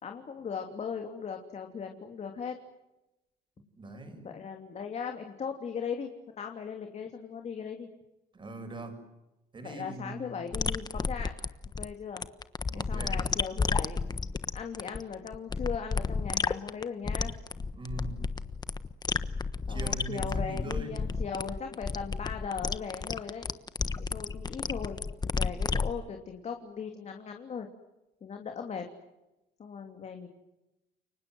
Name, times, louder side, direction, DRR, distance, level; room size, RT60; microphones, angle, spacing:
voice 1, 0.0-2.6 4.2-6.1 6.4-7.9 9.6-11.3 11.8-12.2 12.7-14.0 14.5-17.3 19.7-23.5 24.0-27.7 28.2-28.9 29.6-30.3, left 6 dB, 40° left, 4 dB, 3.0 m, -38 dB
voice 2, 3.8-4.4 8.3-9.0 9.5-10.4 12.7-13.3 17.7-18.2 19.7-21.1, right 2 dB, 30° right, 7 dB, 7.2 m, -41 dB
sound 1, 10.5-25.9, left 4 dB, 25° left, 1.3 m, -31 dB
29.5 x 24.0 x 7.9 m, 0.98 s
cardioid pair, 110°, 17 cm